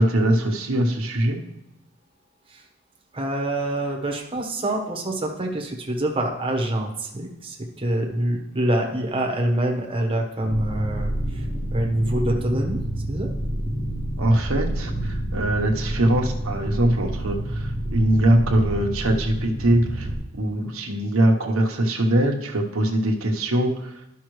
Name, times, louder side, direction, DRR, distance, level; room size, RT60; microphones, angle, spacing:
voice 1, 0.0-1.4 14.2-20.1 20.3-23.9, right 1 dB, 85° right, 2 dB, 1.1 m, -22 dB
voice 2, 3.1-12.8 13.1-13.3, right 1 dB, 25° right, 1 dB, 1.1 m, -26 dB
sound 1, 10.4-20.1, right 1 dB, 45° left, 1.6 m, -28 dB
12.0 x 5.6 x 3.1 m, 0.91 s
head